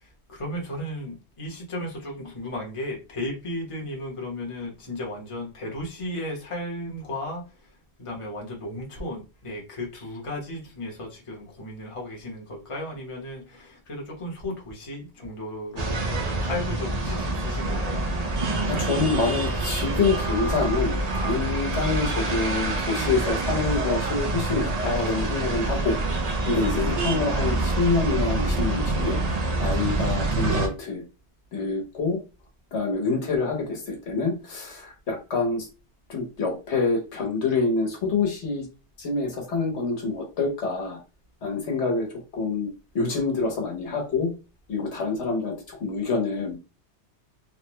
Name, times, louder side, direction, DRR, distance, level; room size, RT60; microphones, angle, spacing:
voice 1, 0.0-7.7 8.0-16.0 16.4-18.1 26.8-27.1, left 1 dB, 30° left, -2 dB, 1.0 m, -35 dB
sound 1, 15.8-30.7, right 2 dB, 45° right, 0.6 m, -26 dB
voice 2, 18.7-26.0 26.5-31.0 31.5-32.2 32.7-35.7 36.1-38.6 39.0-41.0 41.4-42.1 42.3-44.3 44.7-46.6, left 4 dB, 85° left, 0 dB, 1.3 m, -26 dB
3.5 x 2.2 x 2.9 m, 0.31 s
omnidirectional pair, 1.1 m